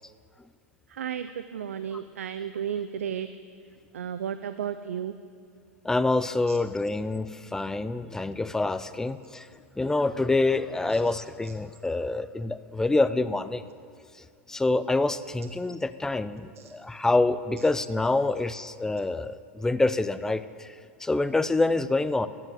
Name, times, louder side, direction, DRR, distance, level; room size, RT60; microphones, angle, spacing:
voice 1, 0.9-3.3 3.9-5.1 6.5-6.6 10.9-11.2 11.4-11.5 16.6-16.7 17.6-17.7, right 8 dB, 80° right, 12 dB, 0.4 m, -34 dB
voice 2, 5.8-9.5 9.8-13.6 14.5-20.7 21.0-22.3, left 2 dB, 5° left, 14 dB, 0.4 m, -26 dB
12.5 x 7.7 x 7.8 m, 2.2 s
hypercardioid pair, 105°, 7 cm